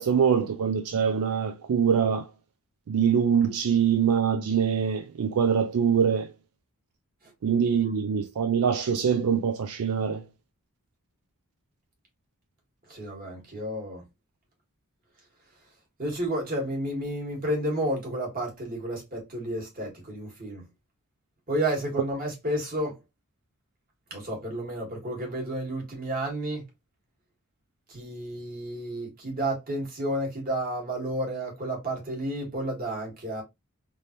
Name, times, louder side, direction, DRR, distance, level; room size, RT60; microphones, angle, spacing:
voice 1, 0.0-2.3 2.9-6.3 7.4-10.2, right 7 dB, 80° right, 0.4 m, -24 dB
voice 2, 12.9-14.0 16.0-20.6 21.5-23.0 24.1-26.6 27.9-33.4, right 1 dB, 40° right, 1.6 m, -31 dB
3.5 x 2.6 x 2.8 m
head